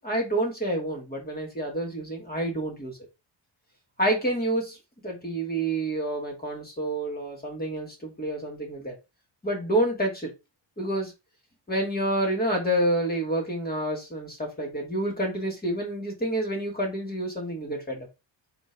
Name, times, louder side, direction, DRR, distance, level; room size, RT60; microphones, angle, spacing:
voice 1, 0.0-3.0 4.0-8.9 9.4-10.3 10.8-11.1 11.7-18.1, right 1 dB, 20° left, 0 dB, 1.9 m, -28 dB
4.4 x 2.5 x 4.5 m, 0.26 s
cardioid pair, 135°, 45 cm